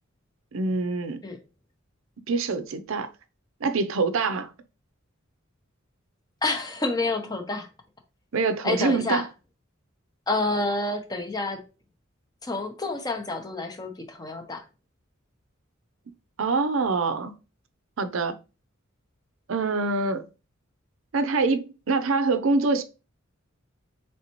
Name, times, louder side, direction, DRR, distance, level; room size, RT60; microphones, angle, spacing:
voice 1, 0.5-1.2 2.3-3.1 3.6-4.5 8.3-9.2 16.4-17.3 18.0-18.4 19.5-20.2 21.1-22.8, right 3 dB, 70° right, 0.5 m, -25 dB
voice 2, 6.4-7.7 8.6-9.2 10.3-11.6 12.4-14.6, left 2 dB, 20° left, 0.7 m, -28 dB
4.0 x 3.3 x 3.0 m
head